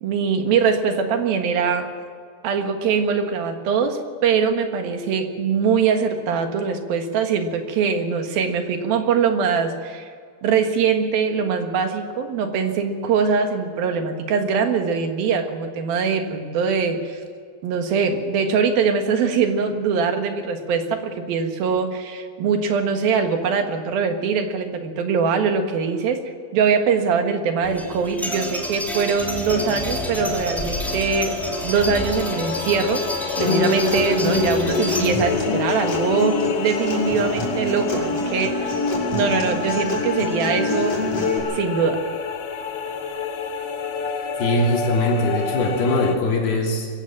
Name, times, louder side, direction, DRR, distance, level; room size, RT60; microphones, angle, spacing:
voice 1, 0.0-1.9 2.4-10.1 10.4-17.2 17.6-26.2 26.5-31.3 31.6-33.0 33.4-38.7 39.1-41.0 41.5-42.0, right 5 dB, 70° right, 5 dB, 3.3 m, -22 dB
sound 1, 27.6-35.4, equal, ahead, 2.1 m, -30 dB
sound 2, 29.5-46.2, left 6 dB, 65° left, 3.1 m, -30 dB
Acoustic guitar, 33.4-41.4, left 3 dB, 40° left, 6.9 m, -25 dB
voice 2, 44.4-46.9, left 2 dB, 80° left, 0 dB, 5.2 m, -21 dB
23.5 x 15.5 x 7.3 m, 2.1 s
omnidirectional pair, 4.4 m